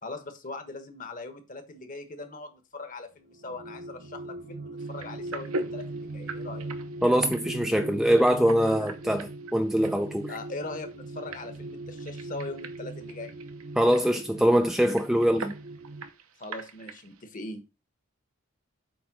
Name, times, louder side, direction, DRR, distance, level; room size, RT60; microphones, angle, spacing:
voice 1, 0.0-6.7 8.7-8.9 10.3-13.3 16.4-17.6, left 2 dB, 40° left, 1.3 m, -40 dB
sound 1, 3.3-16.1, right 2 dB, 50° right, 0.7 m, -40 dB
sound 2, 4.8-17.2, right 3 dB, 80° right, 0.9 m, -43 dB
voice 2, 7.0-10.4 13.8-15.5, equal, ahead, 0.4 m, -23 dB
8.4 x 3.5 x 6.1 m
head